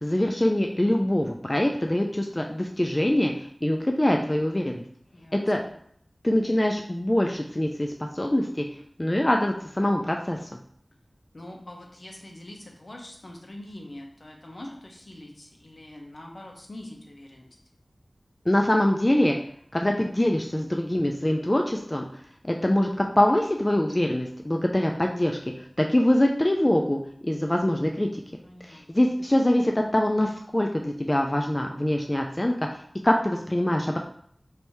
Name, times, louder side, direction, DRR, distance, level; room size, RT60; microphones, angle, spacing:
voice 1, 0.0-4.8 5.3-5.6 6.2-8.6 9.0-10.4 18.5-19.4 19.7-22.0 22.4-25.4 25.8-28.2 28.6-32.5 33.0-34.0, left 1 dB, 25° left, 2 dB, 0.3 m, -24 dB
voice 2, 5.1-5.7 11.3-17.5 28.4-29.1, left 1 dB, 60° left, 1 dB, 0.8 m, -44 dB
3.3 x 2.7 x 4.4 m, 0.67 s
wide cardioid pair, 55°, 0 cm